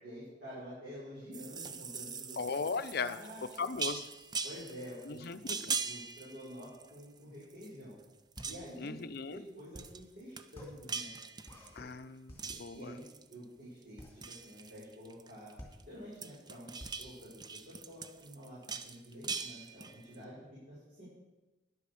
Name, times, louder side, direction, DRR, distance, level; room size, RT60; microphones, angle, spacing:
voice 1, 0.0-2.4 2.7-3.6 4.4-8.0 8.4-9.0 9.3-11.1 12.7-13.0 13.3-15.5 15.9-21.0, equal, 55° right, -10 dB, 5.4 m, -49 dB
sound 1, 1.3-7.2 7.5-8.0 8.3-8.9 9.8-10.0 10.4-11.9 12.4-13.4 13.8-15.8 16.1-20.2, right 5 dB, 25° right, 0.5 m, -41 dB
voice 2, 2.4-3.2 3.6-4.1 5.1-5.8 8.8-9.4 11.8-12.3 12.6-12.8, left 4 dB, 60° left, 11 dB, 0.6 m, -37 dB
sound 2, 8.3-18.2, equal, 15° left, 2.7 m, -53 dB
10.5 x 8.4 x 6.9 m, 1.1 s
head